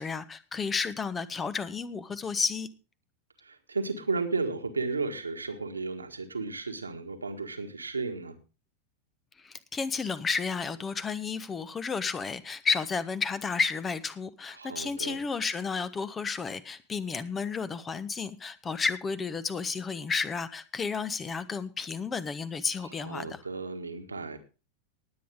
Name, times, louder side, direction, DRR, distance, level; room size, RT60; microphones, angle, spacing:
voice 1, 0.0-2.7 9.4-23.4, left 5 dB, 20° left, 16 dB, 1.0 m, -32 dB
voice 2, 3.4-8.4 14.5-15.2 22.8-24.4, right 4 dB, 80° right, 6 dB, 1.6 m, -34 dB
19.0 x 8.6 x 3.6 m, 0.31 s
figure-of-eight pair, 90°, 0 cm